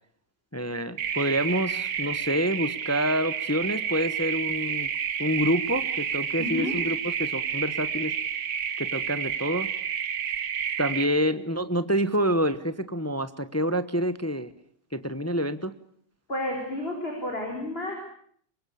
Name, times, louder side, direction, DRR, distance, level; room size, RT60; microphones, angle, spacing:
voice 1, 0.5-4.9 5.2-8.1 8.8-9.7 10.8-14.5 14.9-15.7, equal, 10° left, 12 dB, 0.8 m, -27 dB
sound 1, 1.0-11.0, right 7 dB, 90° right, 2.0 m, -30 dB
voice 2, 6.4-6.8 16.3-18.0, left 1 dB, 30° left, 2 dB, 5.1 m, -31 dB
24.5 x 22.5 x 8.5 m, 0.62 s
omnidirectional pair, 1.9 m